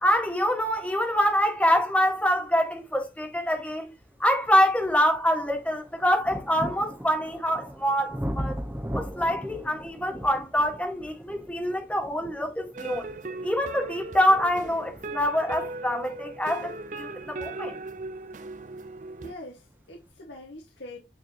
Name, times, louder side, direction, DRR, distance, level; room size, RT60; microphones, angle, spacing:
voice 1, 0.0-3.9 4.2-8.6 8.9-13.1 13.4-17.8, equal, 5° left, 1.6 m, -25 dB
sound 1, 3.4-3.5 4.0-18.7 19.6-19.7, equal, 10° right, 0.9 m, -39 dB
sound 2, 12.7-19.3, right 3 dB, 45° right, 0.6 m, -38 dB
voice 2, 19.2-21.0, left 1 dB, 85° left, 1.8 m, -43 dB
9.3 x 4.4 x 2.9 m
head